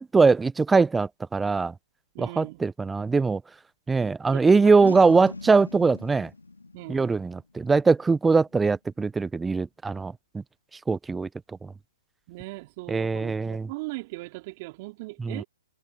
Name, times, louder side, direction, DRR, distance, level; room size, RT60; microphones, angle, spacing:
voice 1, 0.0-1.7 2.2-3.4 3.9-6.3 6.9-10.1 10.9-11.3 11.6-11.7 12.9-13.7 15.2-15.4, right 4 dB, 10° right, 0.7 m, -21 dB
voice 2, 2.1-2.6 4.3-5.2 6.7-7.3 12.3-15.5, right 23 dB, 40° right, 3.7 m, -39 dB
Boom, 4.9-8.2, left 3 dB, 90° left, 2.9 m, -43 dB
hypercardioid pair, 125°, 0 cm